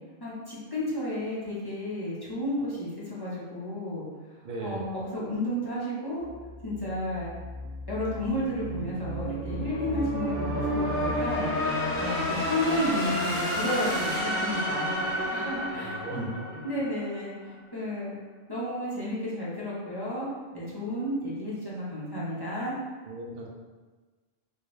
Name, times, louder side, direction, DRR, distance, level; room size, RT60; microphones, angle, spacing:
voice 1, 0.2-4.0 4.6-6.3 6.6-7.3 7.9-11.5 12.0-16.3 16.6-18.1 18.5-20.3 20.5-22.8, left 1 dB, 25° left, -8 dB, 0.7 m, -32 dB
voice 2, 4.4-4.8 15.7-16.6 23.1-23.5, right 1 dB, 55° right, -1 dB, 0.7 m, -37 dB
sound 1, 6.3-17.3, equal, 15° right, 0.5 m, -31 dB
3.2 x 2.8 x 3.1 m, 1.3 s
omnidirectional pair, 1.3 m